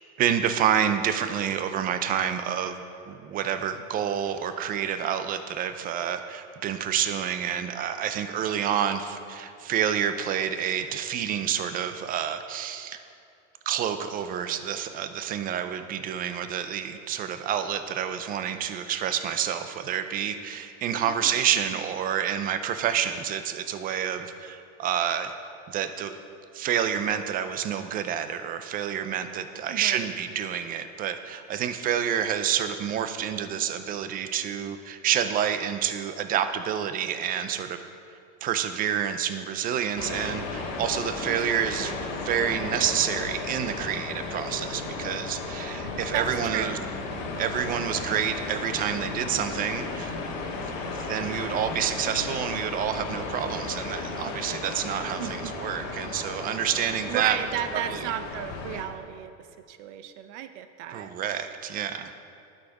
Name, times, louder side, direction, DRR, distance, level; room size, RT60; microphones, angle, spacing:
voice 1, 0.2-13.0 13.7-25.3 25.7-26.1 26.5-37.8 38.4-46.8 47.4-50.1 50.6-57.4 57.9-58.1 60.9-62.1, right 9 dB, 25° right, 9 dB, 0.4 m, -28 dB
voice 2, 21.1-21.4 21.6-21.8 29.7-30.1 41.3-41.6 41.9-42.1 46.1-46.9 55.2-55.9 57.1-61.1, right 10 dB, 65° right, 10 dB, 0.8 m, -34 dB
sound 1, 40.0-58.8, left 3 dB, 90° left, 1.5 m, -34 dB
11.5 x 6.5 x 4.7 m, 2.5 s
supercardioid pair, 140°, 38 cm